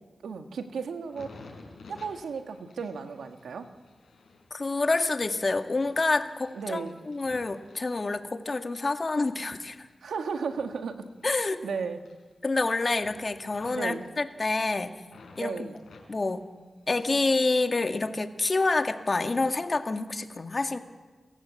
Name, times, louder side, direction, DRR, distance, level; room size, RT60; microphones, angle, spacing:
voice 1, 0.2-1.3 1.9-3.7 6.5-7.0 10.0-12.0 13.7-14.1 15.4-15.8, right 5 dB, 90° right, 6 dB, 1.6 m, -35 dB
sound 1, 0.9-8.6 9.1-11.7 11.9-12.6 12.9-15.4 15.8-17.3 17.6-18.3 18.9-19.1, left 3 dB, 85° left, 5.6 m, -54 dB
voice 2, 4.5-9.9 11.2-11.6 12.4-15.0 15.4-15.7 16.1-16.5 16.9-20.8, left 3 dB, 45° left, 6 dB, 1.9 m, -28 dB
29.0 x 14.5 x 8.4 m, 1.4 s
cardioid pair, 45°, 0 cm